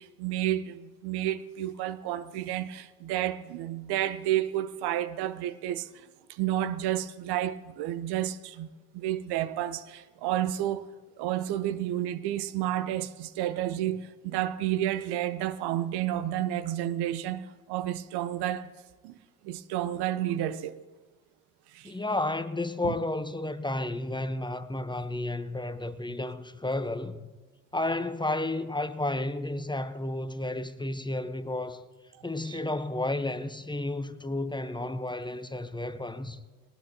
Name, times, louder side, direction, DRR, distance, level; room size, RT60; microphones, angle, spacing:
voice 1, 0.0-8.7 8.9-10.8 11.2-18.7 19.0-19.2 19.4-20.8 21.7-21.9 22.8-22.9 32.4-32.6, right 12 dB, 65° right, 0.8 m, -31 dB
voice 2, 21.8-27.3 27.7-31.9 32.2-36.4, left 2 dB, 10° left, 0.9 m, -32 dB
19.5 x 18.5 x 2.9 m
hypercardioid pair, 50°, 43 cm